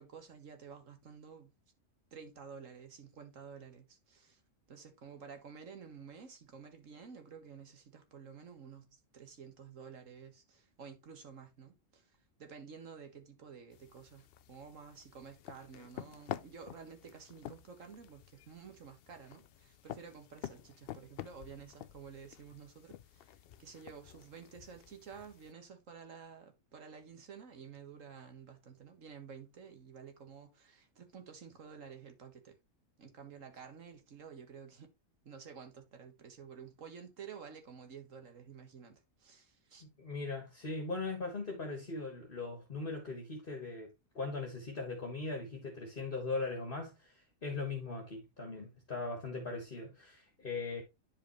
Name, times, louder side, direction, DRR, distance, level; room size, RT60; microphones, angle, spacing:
voice 1, 0.0-1.5 2.1-4.4 4.7-12.1 12.4-32.6 33.0-34.9 35.2-39.9, right 6 dB, 75° right, 1.8 m, -51 dB
sound 1, 13.7-25.5, left 11 dB, 65° left, 0.6 m, -49 dB
voice 2, 39.8-50.8, left 3 dB, 45° left, 1.8 m, -40 dB
9.9 x 5.1 x 3.1 m
omnidirectional pair, 1.3 m